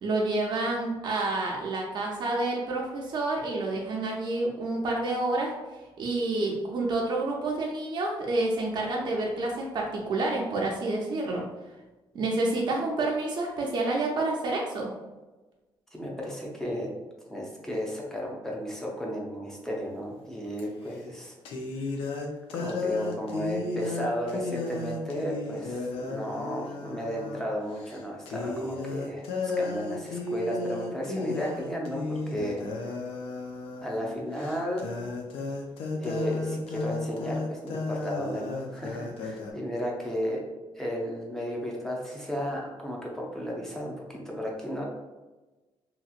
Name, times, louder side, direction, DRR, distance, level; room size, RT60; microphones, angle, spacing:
voice 1, 0.0-5.5 6.0-11.4 12.1-14.9, right 2 dB, 55° right, -1 dB, 0.5 m, -28 dB
voice 2, 15.9-16.9 17.3-21.4 21.8-22.0 22.5-33.0 33.8-34.9 35.9-40.4 40.7-44.9, equal, 5° left, -2 dB, 0.6 m, -34 dB
sound 1, 20.6-20.7 21.4-27.5 27.8-28.0 28.2-39.5, left 3 dB, 80° left, 0.5 m, -34 dB
2.9 x 2.8 x 2.4 m, 1.2 s
cardioid pair, 155°, 9 cm